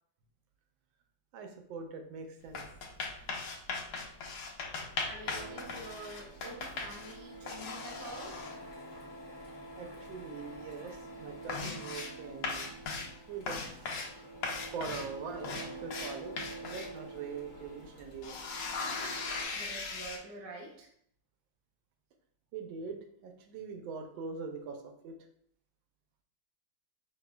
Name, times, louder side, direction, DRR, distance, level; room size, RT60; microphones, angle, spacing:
voice 1, 1.3-2.6 9.8-12.7 13.3-13.9 14.7-18.4 22.5-25.2, right 5 dB, 80° right, 5 dB, 1.4 m, -43 dB
sound 1, 2.4-7.2 7.5-8.6 9.7-9.8 10.1-10.5 10.8-10.9 11.3-12.2 12.4-13.2 13.5-14.1 14.4-16.9 17.5-17.6 18.0-20.2, left 4 dB, 65° left, 1.1 m, -39 dB
voice 2, 5.0-8.4 19.2-20.9, right 2 dB, 65° right, -2 dB, 0.5 m, -47 dB
Printer, 5.2-19.4, right 2 dB, 30° left, 0.4 m, -48 dB
5.0 x 3.2 x 2.2 m, 0.67 s
omnidirectional pair, 2.1 m